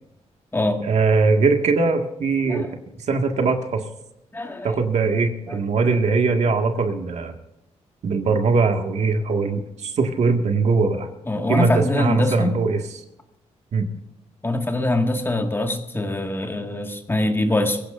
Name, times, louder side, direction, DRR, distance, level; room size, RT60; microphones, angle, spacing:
voice 1, 0.8-2.7 3.0-3.8 4.6-7.3 8.0-11.1 11.5-12.8 13.7-13.9, right 4 dB, 70° right, 4 dB, 1.9 m, -21 dB
voice 2, 4.3-4.8 5.5-5.6 11.3-12.5 14.4-17.8, left 1 dB, 20° left, 4 dB, 1.9 m, -23 dB
23.0 x 16.0 x 2.6 m, 0.86 s
cardioid pair, 110°, 12 cm